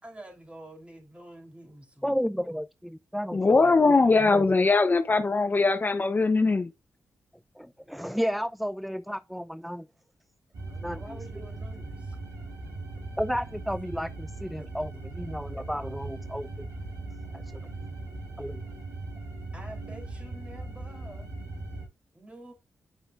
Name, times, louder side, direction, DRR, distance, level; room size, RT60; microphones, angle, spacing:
voice 1, 0.0-2.1 10.9-12.2 19.5-21.3 22.1-22.5, right 1 dB, 20° right, 3.2 m, -47 dB
voice 2, 2.0-3.7 4.3-4.5 7.6-9.9 10.8-11.2 13.2-16.7 17.3-17.4 18.4-18.6, equal, ahead, 0.3 m, -32 dB
voice 3, 3.3-6.7, left 3 dB, 35° left, 0.6 m, -21 dB
sound 1, 10.5-21.9, right 2 dB, 75° right, 3.7 m, -39 dB
8.2 x 6.0 x 2.4 m
supercardioid pair, 50°, 6 cm